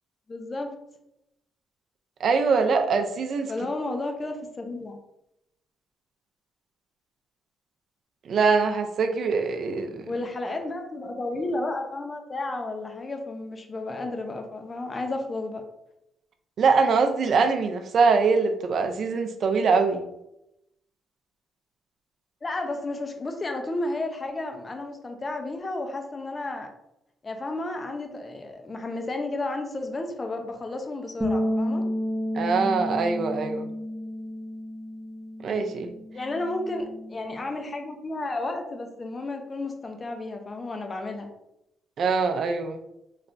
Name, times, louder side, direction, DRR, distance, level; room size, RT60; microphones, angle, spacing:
voice 1, 0.3-0.7 3.5-5.0 10.1-15.6 22.4-26.7 27.2-31.8 36.1-41.3, left 2 dB, 30° left, 4 dB, 0.7 m, -32 dB
voice 2, 2.2-3.5 8.3-10.1 16.6-20.0 32.3-33.7 35.4-36.0 42.0-42.8, right 4 dB, 55° right, 6 dB, 0.5 m, -23 dB
sound 1, 31.2-37.5, equal, 10° right, 0.9 m, -31 dB
4.2 x 3.2 x 2.6 m, 0.84 s
cardioid pair, 90°, 0 cm